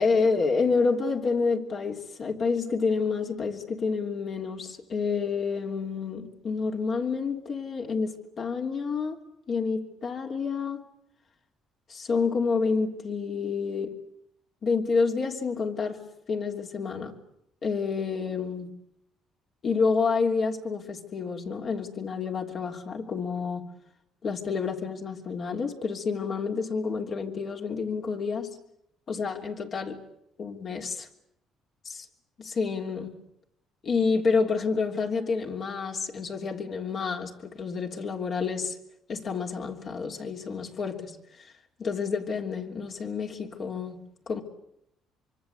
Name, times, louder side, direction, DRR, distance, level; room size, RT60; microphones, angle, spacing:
voice 1, 0.0-10.8 11.9-14.0 14.6-16.0 16.3-17.1 17.6-18.7 19.6-23.7 24.2-28.6 29.1-30.0 30.4-31.1 31.8-32.0 32.6-33.1 33.8-38.8 39.1-41.5 41.8-44.4, left 5 dB, 45° left, 3.2 m, -29 dB
25.0 x 24.0 x 8.3 m
cardioid pair, 115°, 0 cm